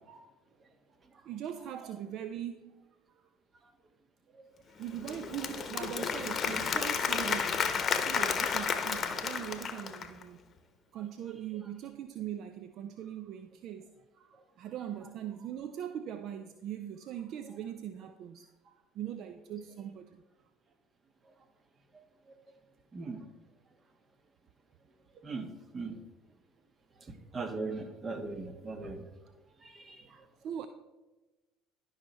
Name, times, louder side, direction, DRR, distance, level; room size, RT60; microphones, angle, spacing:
voice 1, 1.2-3.2 4.8-10.4 10.9-20.2 30.0-30.1 30.4-30.7, right 10 dB, 55° right, 0.5 m, -41 dB
Applause / Crowd, 4.8-10.2, left 6 dB, 40° left, 0.9 m, -32 dB
voice 2, 21.9-22.4 22.9-23.3 25.1-25.5 25.7-25.9 27.0-29.1 29.6-30.2, right 3 dB, 35° right, 1.3 m, -40 dB
11.5 x 5.6 x 4.5 m
hypercardioid pair, 70°, 0 cm